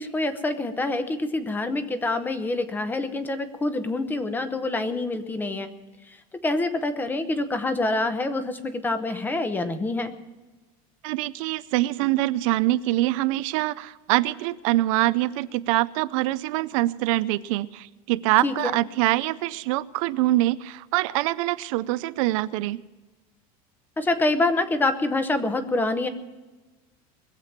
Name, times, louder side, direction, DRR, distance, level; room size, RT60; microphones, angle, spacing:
voice 1, 0.0-5.7 6.4-10.1 18.4-18.7 24.0-26.1, left 2 dB, 10° left, 10 dB, 0.9 m, -26 dB
voice 2, 11.0-22.8, right 17 dB, 70° right, 15 dB, 0.5 m, -24 dB
21.0 x 7.6 x 7.3 m, 1.2 s
cardioid pair, 170°, 17 cm